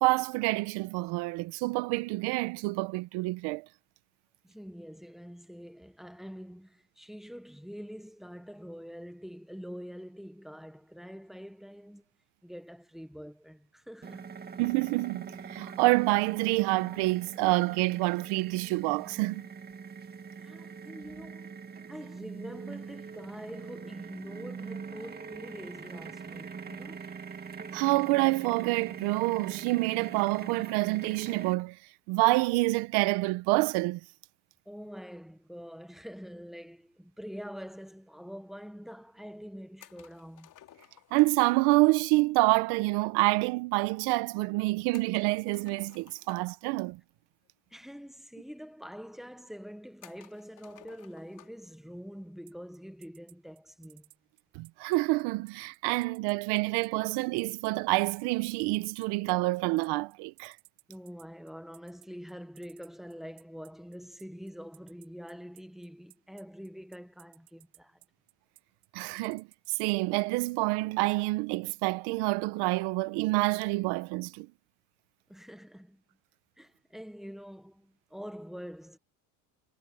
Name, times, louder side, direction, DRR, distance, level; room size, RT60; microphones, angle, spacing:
voice 1, 0.0-3.6 14.6-19.4 27.7-31.8 32.1-34.0 41.1-47.0 54.5-60.5 68.9-74.5, right 22 dB, 65° right, 1.1 m, -27 dB
voice 2, 4.4-12.0 12.4-14.3 20.4-21.5 21.9-27.1 34.6-40.5 47.7-54.1 60.9-68.0 75.3-76.0 76.6-79.0, equal, ahead, 1.4 m, -45 dB
sound 1, 14.0-31.5, right 6 dB, 20° right, 2.3 m, -43 dB
sound 2, 39.8-41.5 44.9-46.6 47.7-47.8 48.1-48.2 49.0-49.1 50.0-51.7, left 12 dB, 45° left, 5.2 m, -56 dB
sound 3, 52.5-69.8, right 26 dB, 90° right, 5.6 m, -58 dB
cardioid pair, 130°, 42 cm